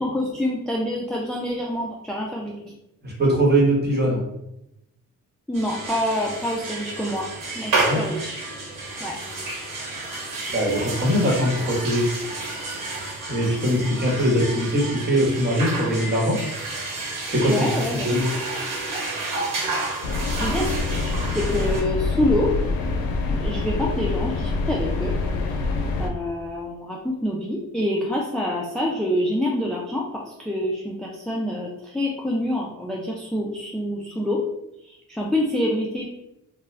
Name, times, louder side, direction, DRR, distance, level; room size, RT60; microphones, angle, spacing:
voice 1, 0.0-2.6 5.5-7.3 7.6-8.4 9.0-9.2 17.5-18.1 20.4-20.8 21.3-22.5 23.3-25.2 26.0-34.4 34.9-36.1, left 1 dB, ahead, -3 dB, 0.4 m, -26 dB
voice 2, 3.0-4.2 7.8-8.0 10.5-12.1 13.3-16.4 17.3-18.2, equal, 30° right, -3 dB, 1.3 m, -21 dB
sound 1, 5.5-21.8, right 2 dB, 65° right, 1.2 m, -30 dB
sound 2, 20.0-26.1, left 3 dB, 85° left, 0.5 m, -25 dB
2.3 x 2.2 x 3.2 m, 0.85 s
supercardioid pair, 60°, 35 cm